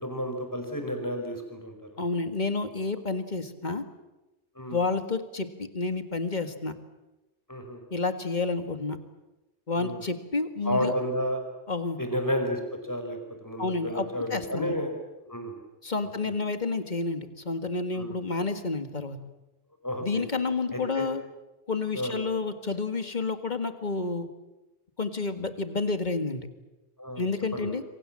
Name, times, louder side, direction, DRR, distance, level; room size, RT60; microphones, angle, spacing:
voice 1, 0.0-1.7 4.5-4.8 7.5-7.8 9.8-10.0 10.6-11.4 12.0-14.9 15.3-15.6 16.2-16.3 18.0-18.1 19.8-20.2 20.7-21.1 21.9-22.1 27.0-27.2 27.5-27.7, equal, 15° left, 4 dB, 5.0 m, -31 dB
voice 2, 2.0-3.9 4.7-6.7 7.9-9.0 9.7-10.9 11.7-12.0 13.6-14.8 15.8-19.2 20.0-21.2 21.7-24.3 25.0-26.5 27.2-27.8, left 3 dB, 40° left, 9 dB, 1.9 m, -30 dB
27.0 x 24.5 x 7.6 m, 1.0 s
omnidirectional pair, 1.2 m